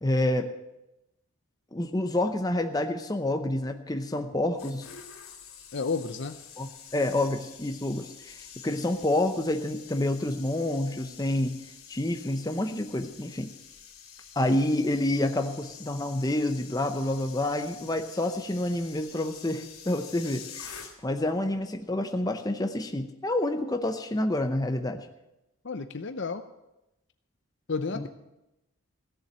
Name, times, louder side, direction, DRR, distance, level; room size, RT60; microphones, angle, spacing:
voice 1, 0.0-0.5 1.7-4.9 6.6-11.6 11.9-13.5 14.4-25.1 27.9-28.1, left 1 dB, 15° left, 6 dB, 0.7 m, -28 dB
sound 1, 4.3-21.3 21.5-21.8, left 7 dB, 75° left, 2.8 m, -48 dB
voice 2, 5.7-6.4 25.6-26.4 27.7-28.1, left 4 dB, 50° left, 9 dB, 0.6 m, -31 dB
16.0 x 7.2 x 8.8 m, 0.92 s
head